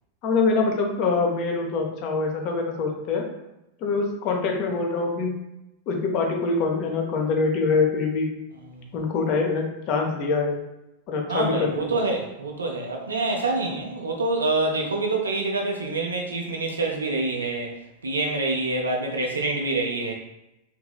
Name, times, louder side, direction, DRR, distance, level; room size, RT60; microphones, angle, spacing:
voice 1, 0.2-3.2 3.8-5.4 5.9-8.3 8.9-10.6 11.1-12.0, left 4 dB, 40° left, 1 dB, 0.5 m, -24 dB
voice 2, 11.3-17.7 18.0-20.1, right 2 dB, 75° right, 1 dB, 0.5 m, -26 dB
2.8 x 2.6 x 2.3 m, 0.90 s
figure-of-eight pair, 90°, 0 cm